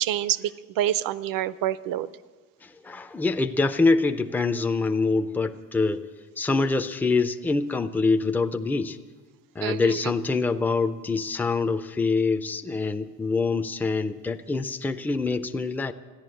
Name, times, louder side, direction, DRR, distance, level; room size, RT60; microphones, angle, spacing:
voice 1, 0.0-2.1 9.6-10.1, right 12 dB, 60° right, 17 dB, 0.6 m, -27 dB
voice 2, 2.6-6.1 6.4-9.0 9.6-15.9, left 3 dB, 5° left, 8 dB, 0.4 m, -25 dB
14.5 x 10.5 x 7.7 m, 1.4 s
cardioid pair, 115°, 39 cm